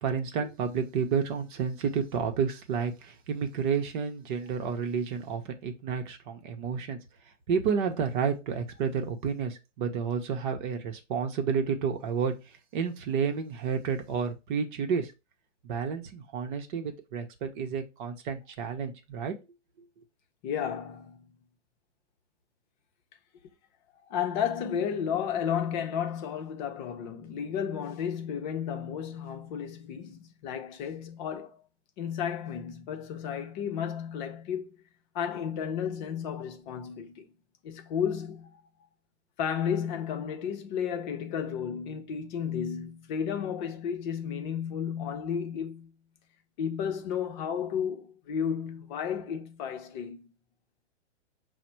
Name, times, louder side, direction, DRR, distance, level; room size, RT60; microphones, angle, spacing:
voice 1, 0.0-7.0 7.5-12.3 12.7-15.1 15.6-19.3, right 6 dB, 45° right, 0.8 m, -30 dB
voice 2, 20.4-21.2 24.1-31.6 32.0-34.8 35.1-37.2 37.6-38.6 39.4-45.9 46.6-50.2, left 8 dB, 40° left, 0.7 m, -33 dB
4.9 x 2.1 x 4.4 m
hypercardioid pair, 130°, 36 cm